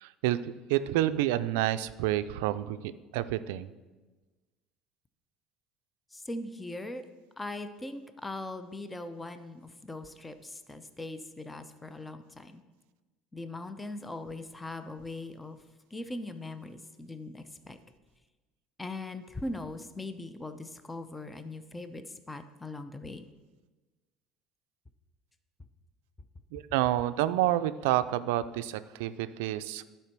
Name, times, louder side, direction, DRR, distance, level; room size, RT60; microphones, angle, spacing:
voice 1, 0.0-3.7 26.5-29.8, right 14 dB, 85° right, 13 dB, 0.4 m, -29 dB
voice 2, 6.1-7.1 7.4-12.6 13.3-15.6 15.9-17.8 18.8-23.3, left 2 dB, 15° left, 10 dB, 0.6 m, -40 dB
10.5 x 4.5 x 5.9 m, 1.2 s
supercardioid pair, 95°, 0 cm